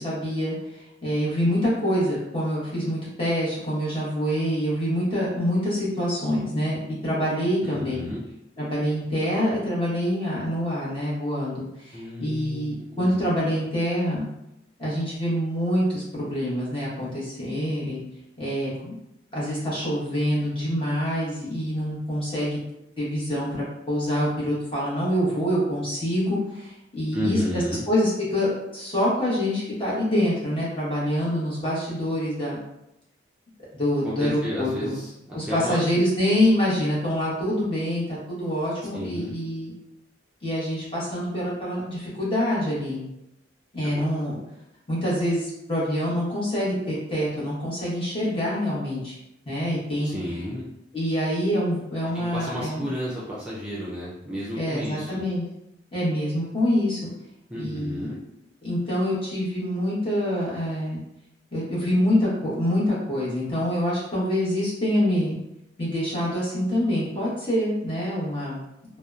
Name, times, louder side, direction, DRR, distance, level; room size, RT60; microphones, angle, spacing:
voice 1, 0.0-8.1 8.6-14.2 14.8-18.0 18.4-19.0 19.3-22.6 23.0-32.6 33.8-35.0 35.3-39.7 40.4-43.1 43.7-44.4 44.9-49.2 49.5-50.1 50.9-52.9 54.5-55.4 55.9-57.1 57.5-58.1 58.6-61.0 61.5-65.4 65.8-68.6, equal, 30° left, -8 dB, 1.0 m, -26 dB
voice 2, 7.6-8.2 11.9-13.0 27.1-27.8 34.0-35.8 38.9-39.3 43.9-44.0 50.0-50.7 52.1-55.2 57.5-58.2, equal, 5° right, -8 dB, 0.4 m, -32 dB
2.7 x 2.1 x 2.3 m, 0.84 s
head